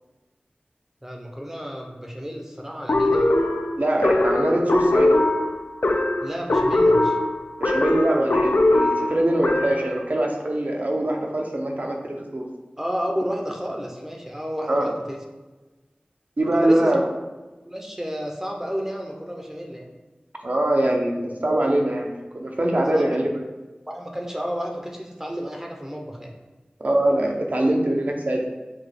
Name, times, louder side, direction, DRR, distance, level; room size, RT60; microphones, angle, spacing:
voice 1, 1.0-3.3 6.2-7.2 12.8-15.2 16.5-17.0 17.7-19.9 22.9-23.1 23.9-26.3, equal, 15° right, 0 dB, 0.6 m, -31 dB
sound 1, 2.9-9.9, left 2 dB, 75° left, 0.4 m, -20 dB
voice 2, 3.8-5.2 7.6-12.4 14.7-14.9 16.4-17.0 20.4-22.1 22.3-23.4 26.8-28.4, right 1 dB, 55° right, 1 dB, 0.7 m, -23 dB
5.9 x 2.3 x 3.3 m, 1.2 s
wide cardioid pair, 45°, 3 cm